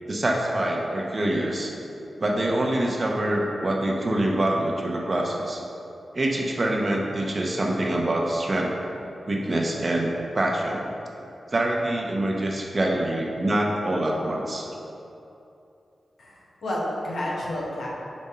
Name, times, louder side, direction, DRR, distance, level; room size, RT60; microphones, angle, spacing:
voice 1, 0.1-1.7 2.2-5.6 6.1-8.7 9.3-10.9 11.5-14.7, right 1 dB, 40° right, -1 dB, 0.8 m, -25 dB
voice 2, 16.2-17.9, left 1 dB, 85° left, -5 dB, 1.1 m, -30 dB
5.2 x 3.5 x 5.5 m, 2.8 s
wide cardioid pair, 90°, 0 cm